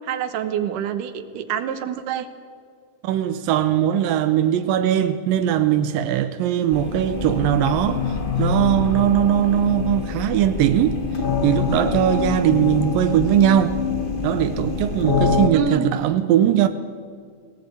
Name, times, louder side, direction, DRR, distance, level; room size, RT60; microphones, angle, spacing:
voice 1, 0.0-2.3 15.5-15.9, right 8 dB, 75° right, 2.7 m, -26 dB
voice 2, 3.0-11.0 11.4-13.8 14.2-16.7, right 11 dB, 90° right, 2.6 m, -20 dB
sound 1, 6.7-15.5, left 4 dB, 60° left, 0.5 m, -25 dB
21.0 x 18.0 x 8.5 m
omnidirectional pair, 3.8 m